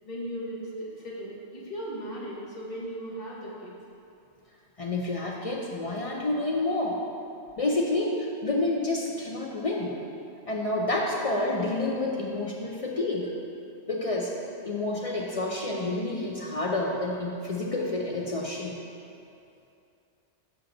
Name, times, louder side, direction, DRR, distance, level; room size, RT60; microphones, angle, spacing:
voice 1, 0.0-3.7, right 1 dB, 35° left, -6 dB, 1.3 m, -37 dB
voice 2, 4.8-7.0 7.6-10.0 10.5-13.3 13.9-14.4 14.6-18.8, left 2 dB, 60° left, -2 dB, 0.3 m, -29 dB
7.1 x 5.2 x 3.8 m, 2.6 s
omnidirectional pair, 1.3 m